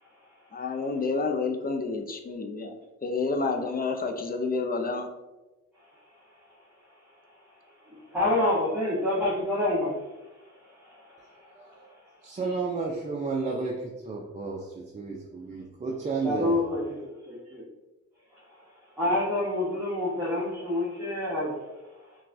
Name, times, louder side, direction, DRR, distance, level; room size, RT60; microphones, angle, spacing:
voice 1, 0.5-2.7 3.0-5.1, left 4 dB, 30° left, 4 dB, 0.5 m, -29 dB
voice 2, 8.1-10.0 10.8-11.6 12.4-12.5 16.2-17.6 19.0-21.6, left 1 dB, 5° right, -9 dB, 1.3 m, -28 dB
voice 3, 11.6-11.9 12.2-16.6, right 4 dB, 25° right, -2 dB, 0.5 m, -32 dB
5.7 x 2.3 x 2.6 m, 1.1 s
cardioid pair, 90°, 30 cm